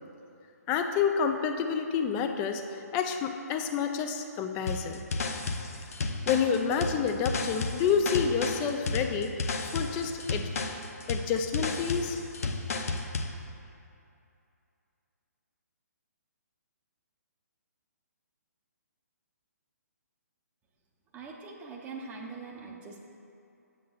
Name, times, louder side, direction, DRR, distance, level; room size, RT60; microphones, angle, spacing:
voice 1, 0.7-5.0 6.3-9.5 9.7-10.5 11.1-12.2, left 6 dB, 20° left, 6 dB, 0.4 m, -29 dB
sound 1, 4.7-13.3, left 3 dB, 60° left, 0.6 m, -32 dB
voice 2, 21.1-23.0, right 4 dB, 15° right, -1 dB, 0.6 m, -42 dB
9.2 x 7.7 x 2.4 m, 2.6 s
hypercardioid pair, 145°, 9 cm